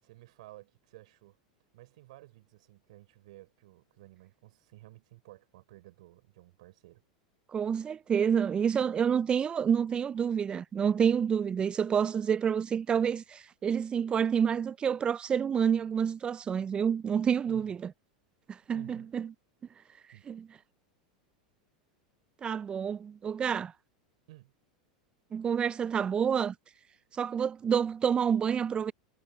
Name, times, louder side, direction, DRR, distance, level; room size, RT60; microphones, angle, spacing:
voice 1, 0.0-1.4 1.7-7.0 17.5-17.8 18.7-19.1 20.1-20.3 24.3-24.5, right 18 dB, 70° right, 5.0 m, -53 dB
voice 2, 7.5-17.9 18.5-19.3 20.3-20.5 22.4-23.7 25.3-26.6 27.1-28.9, right 7 dB, 25° right, 0.4 m, -28 dB
hypercardioid pair, 100°, 4 cm